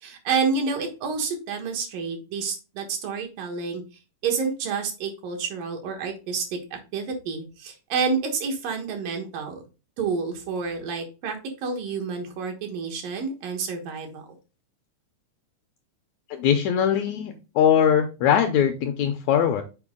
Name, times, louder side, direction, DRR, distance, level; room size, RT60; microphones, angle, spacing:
voice 1, 0.0-3.8 4.2-6.6 6.9-9.6 10.0-11.4 11.6-14.2, right 5 dB, 90° right, 3 dB, 3.0 m, -29 dB
voice 2, 16.3-19.6, left 9 dB, 80° left, 6 dB, 1.7 m, -21 dB
7.0 x 4.4 x 3.6 m, 0.32 s
omnidirectional pair, 3.8 m